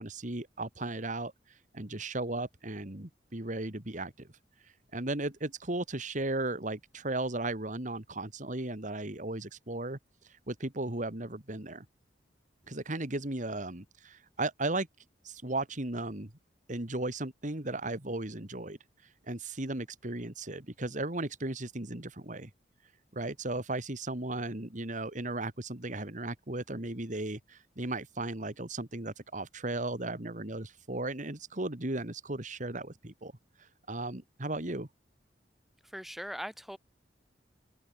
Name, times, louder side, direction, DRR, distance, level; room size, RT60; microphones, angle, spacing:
voice 1, 0.0-4.3 4.6-10.0 10.2-11.9 12.7-14.9 15.2-16.3 16.7-18.8 19.3-22.5 23.1-33.3 33.6-34.9, right 2 dB, 45° right, 2.4 m, -36 dB
voice 2, 35.8-36.8, equal, ahead, 5.0 m, -40 dB
head